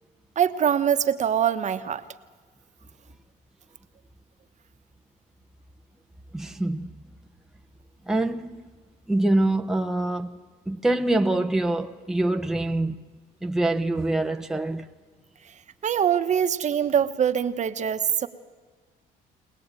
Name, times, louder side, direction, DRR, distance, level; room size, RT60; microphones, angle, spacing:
voice 1, 0.4-2.0 15.8-18.3, right 8 dB, 45° right, 1.2 m, -23 dB
voice 2, 6.3-6.9 8.1-8.6 9.1-10.4 10.7-13.0 13.4-14.9, right 2 dB, 5° right, 0.9 m, -25 dB
23.0 x 19.0 x 9.0 m
cardioid pair, 110°, 17 cm